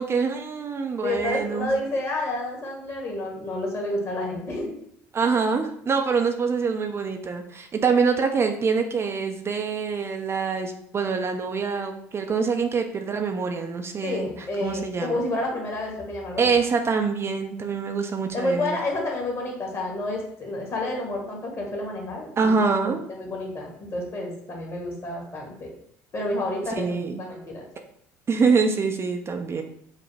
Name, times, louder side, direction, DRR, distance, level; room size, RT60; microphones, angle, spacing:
voice 1, 0.0-1.7 5.1-15.2 16.4-18.8 22.4-23.0 26.8-27.2 28.3-29.6, right 5 dB, 30° right, 4 dB, 0.5 m, -25 dB
voice 2, 1.0-4.8 14.0-16.5 18.3-25.7 26.1-26.9 27.2-27.7, left 1 dB, 40° left, 0 dB, 1.6 m, -30 dB
6.3 x 2.1 x 3.3 m, 0.69 s
hypercardioid pair, 65°, 8 cm